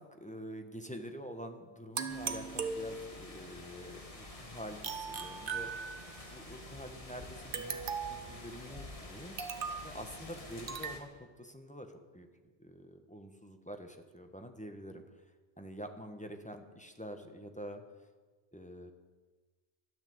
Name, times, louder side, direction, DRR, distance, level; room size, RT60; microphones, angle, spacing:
voice 1, 0.1-6.0 6.3-9.4 9.8-12.3 12.6-15.3 15.6-18.1 18.5-18.9, equal, 5° left, 5 dB, 1.2 m, -47 dB
sound 1, 2.0-3.4 4.8-6.3 7.5-8.3 9.4-9.9 10.7-11.0, right 5 dB, 60° right, 1.1 m, -38 dB
sound 2, 2.1-11.0, left 2 dB, 35° left, 1.9 m, -49 dB
13.0 x 11.0 x 7.9 m, 1.4 s
omnidirectional pair, 1.1 m